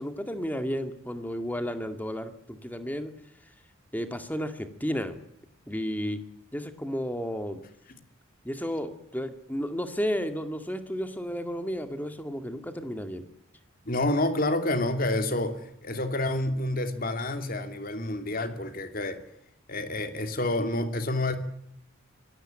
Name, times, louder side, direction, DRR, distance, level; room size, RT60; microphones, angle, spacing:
voice 1, 0.0-3.1 3.9-5.2 5.7-6.2 6.5-7.6 8.4-13.3, equal, 10° left, 7 dB, 2.1 m, -32 dB
voice 2, 13.8-19.2 19.7-21.4, left 1 dB, 45° left, 7 dB, 2.8 m, -28 dB
24.0 x 18.0 x 9.0 m, 0.72 s
head